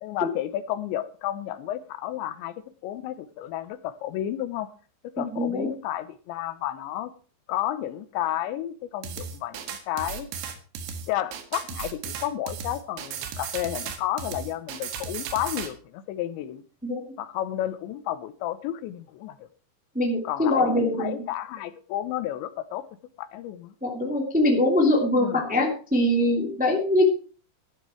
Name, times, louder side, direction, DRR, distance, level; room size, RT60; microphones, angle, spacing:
voice 1, 0.0-2.6 2.8-4.7 5.0-7.1 7.5-10.3 11.1-16.6 17.2-19.5 20.2-22.8 23.2-23.7 25.2-25.6, left 12 dB, 85° left, 3.2 m, -32 dB
voice 2, 5.2-5.7 16.8-17.0 19.9-21.2 23.8-27.0, left 1 dB, 5° right, 1.5 m, -23 dB
sound 1, 9.0-15.7, right 7 dB, 80° right, 3.8 m, -35 dB
12.5 x 11.0 x 4.5 m
omnidirectional pair, 5.0 m